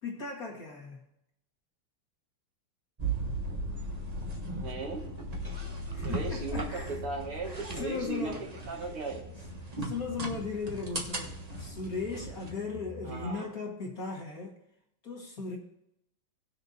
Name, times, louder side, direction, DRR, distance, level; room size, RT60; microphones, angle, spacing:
voice 1, 0.0-1.0 5.9-7.0 7.4-8.4 9.8-11.3 11.6-14.5 15.0-15.6, left 4 dB, 45° left, 0 dB, 1.9 m, -37 dB
sound 1, 3.0-12.6, right 2 dB, 30° right, 0.7 m, -37 dB
sound 2, 3.2-13.3, left 2 dB, 75° left, 1.8 m, -48 dB
voice 2, 4.6-5.1 6.0-8.3 8.7-9.2 13.0-13.5, right 3 dB, 85° right, 0 dB, 2.7 m, -37 dB
19.0 x 6.5 x 2.7 m, 0.81 s
omnidirectional pair, 2.3 m